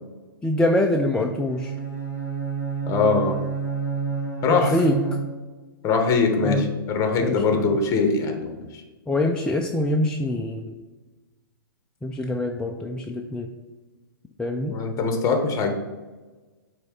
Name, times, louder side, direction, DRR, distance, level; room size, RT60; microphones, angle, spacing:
voice 1, 0.4-1.7 4.5-5.0 6.4-6.7 7.2-7.8 9.1-10.7 12.0-13.5 14.4-14.8, left 1 dB, 5° left, 1 dB, 0.4 m, -24 dB
Bowed string instrument, 1.5-5.7, right 6 dB, 20° right, 2.0 m, -30 dB
voice 2, 2.9-3.4 4.4-4.7 5.8-8.6 14.7-15.7, left 4 dB, 25° left, 5 dB, 1.2 m, -22 dB
8.0 x 3.4 x 5.0 m, 1.3 s
hypercardioid pair, 130°, 12 cm